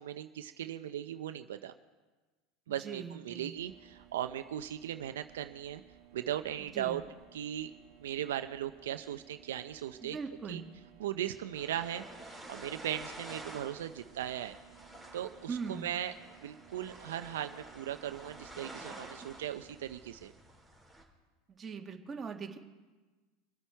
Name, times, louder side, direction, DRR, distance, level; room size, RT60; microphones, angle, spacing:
voice 1, 0.0-1.7 2.7-5.8 6.1-7.0 7.3-7.7 8.0-10.2 10.5-10.6 11.0-12.0 12.5-14.5 15.1-16.1 16.4-20.3, right 11 dB, 85° right, 9 dB, 0.6 m, -38 dB
voice 2, 2.8-3.5 6.7-7.0 10.0-10.7 15.5-15.9 21.5-22.6, right 5 dB, 25° right, 2 dB, 1.8 m, -40 dB
sound 1, 3.6-19.8, right 11 dB, 50° right, 1.7 m, -60 dB
sound 2, 11.6-21.0, right 1 dB, 10° left, 3.6 m, -50 dB
24.5 x 8.4 x 4.5 m, 1.3 s
hypercardioid pair, 105°, 0 cm